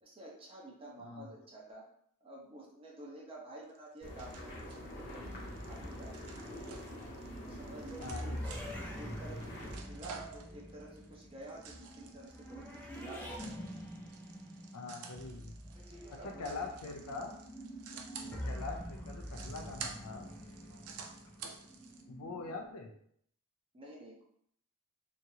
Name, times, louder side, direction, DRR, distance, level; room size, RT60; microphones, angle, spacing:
voice 1, 0.0-1.9 2.2-6.8 7.4-8.3 9.0-12.7 12.9-13.4 15.7-16.6 17.9-18.1 20.7-20.9 23.7-24.2, right 1 dB, 25° right, -3 dB, 0.7 m, -51 dB
voice 2, 1.0-1.3 8.0-8.4 8.7-8.9 14.7-15.6 16.1-17.3 18.2-20.3 22.1-22.9, left 3 dB, 80° left, 4 dB, 0.5 m, -43 dB
sound 1, 3.7-22.0, right 6 dB, 70° right, 0.4 m, -51 dB
sound 2, 4.0-9.8, equal, 50° left, 1.0 m, -46 dB
sound 3, 5.2-22.7, equal, 10° left, 0.5 m, -46 dB
2.9 x 2.4 x 2.7 m, 0.68 s
head